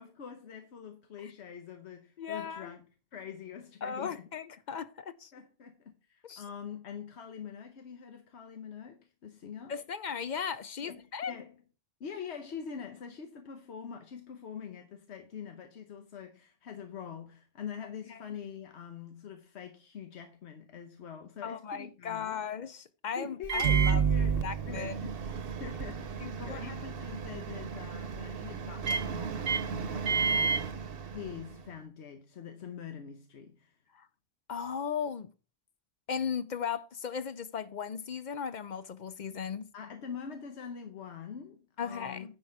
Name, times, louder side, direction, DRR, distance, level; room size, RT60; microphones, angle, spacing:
voice 1, 0.0-2.9 3.1-4.3 5.3-9.8 10.8-11.6 12.0-22.5 23.2-25.2 25.6-33.8 39.7-42.4, left 7 dB, 90° left, 1.2 m, -44 dB
voice 2, 2.2-2.7 3.8-5.3 6.2-6.4 9.7-11.3 21.4-24.9 26.2-26.6 33.9-34.1 34.5-35.3 36.1-39.7 41.8-42.3, left 7 dB, 55° left, 0.6 m, -37 dB
Microwave oven, 23.4-31.6, right 6 dB, 60° right, 0.9 m, -31 dB
9.8 x 4.7 x 4.6 m
omnidirectional pair, 1.1 m